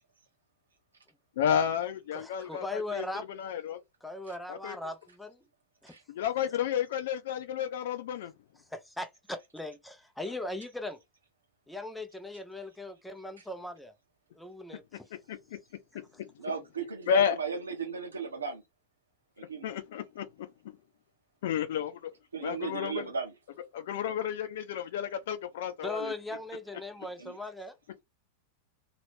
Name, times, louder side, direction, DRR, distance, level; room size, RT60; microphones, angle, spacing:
voice 1, 1.4-3.0 3.3-3.8 4.5-4.8 6.1-8.3 15.3-15.6 15.9-16.3 17.1-17.3 19.6-20.8 21.4-22.1 22.4-23.0 23.7-26.1, left 9 dB, 55° left, 0.6 m, -31 dB
voice 2, 2.1-3.3 4.0-5.4 5.8-5.9 6.5-6.6 8.7-11.0 11.7-13.9 14.3-15.1 25.8-27.8, left 2 dB, 5° left, 0.6 m, -39 dB
voice 3, 16.4-18.6 19.4-19.7 22.3-23.3 27.2-27.3, right 5 dB, 75° right, 1.1 m, -36 dB
3.0 x 2.9 x 3.1 m
figure-of-eight pair, 90°, 0 cm